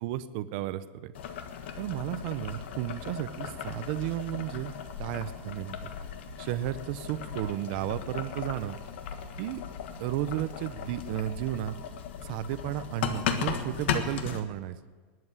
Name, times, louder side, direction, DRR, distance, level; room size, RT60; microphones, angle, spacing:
voice 1, 0.0-1.1 1.8-5.9 6.4-8.8 9.4-9.6 10.0-11.8 12.2-14.8, right 13 dB, 50° right, 13 dB, 0.7 m, -33 dB
Boiling, 1.1-14.4, left 7 dB, 75° left, 1.5 m, -37 dB
20.5 x 7.8 x 7.5 m, 1.4 s
supercardioid pair, 165°, 6 cm